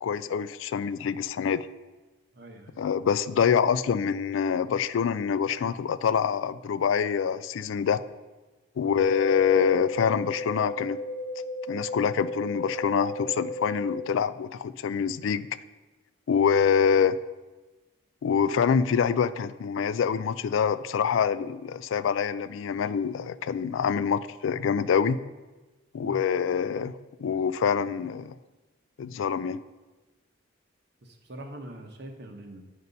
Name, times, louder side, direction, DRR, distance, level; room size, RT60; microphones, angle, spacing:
voice 1, 0.0-1.7 2.8-8.0 8.8-11.0 11.7-15.5 16.3-17.2 18.2-25.2 25.9-26.9 27.2-28.3 29.0-29.6, left 7 dB, 80° left, 15 dB, 0.3 m, -25 dB
voice 2, 2.3-2.8 8.8-9.1 26.0-26.2 31.0-32.6, right 1 dB, 55° right, 4 dB, 1.0 m, -43 dB
sound 1, 9.0-14.0, left 1 dB, 80° right, 1.2 m, -35 dB
9.4 x 5.4 x 4.1 m, 1.2 s
head